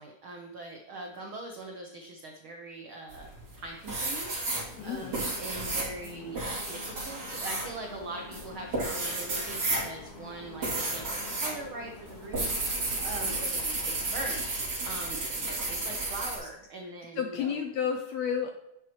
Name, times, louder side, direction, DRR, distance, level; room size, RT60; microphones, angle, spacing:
voice 1, 0.0-4.3 4.8-14.5 14.8-17.6, right 2 dB, 85° right, 2 dB, 1.1 m, -42 dB
sound 1, 3.1-3.6 3.9-11.6 11.8-16.4, right 2 dB, 35° right, 3.0 m, -32 dB
sound 2, 4.5-13.5, left 5 dB, 60° left, 1.5 m, -48 dB
voice 2, 4.8-5.2 17.1-18.5, left 7 dB, 85° left, 5 dB, 1.6 m, -31 dB
10.5 x 7.4 x 3.1 m, 0.87 s
omnidirectional pair, 3.7 m